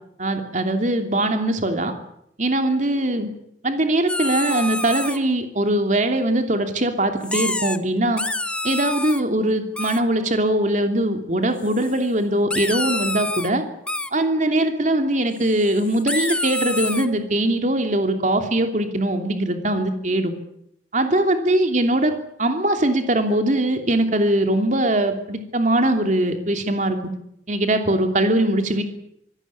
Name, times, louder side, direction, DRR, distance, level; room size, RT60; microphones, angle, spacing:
voice 1, 0.2-1.9 2.4-3.3 3.6-8.2 8.6-13.6 14.1-20.3 20.9-22.1 22.4-27.0 27.5-28.8, right 1 dB, 45° right, 6 dB, 2.9 m, -21 dB
sound 1, 4.1-5.2 7.2-7.8 8.0-9.2 9.8-10.0 11.6-12.1 12.5-13.5 13.9-14.1 15.4-17.1, left 2 dB, 5° left, 1.0 m, -27 dB
25.0 x 17.0 x 8.6 m, 0.75 s
head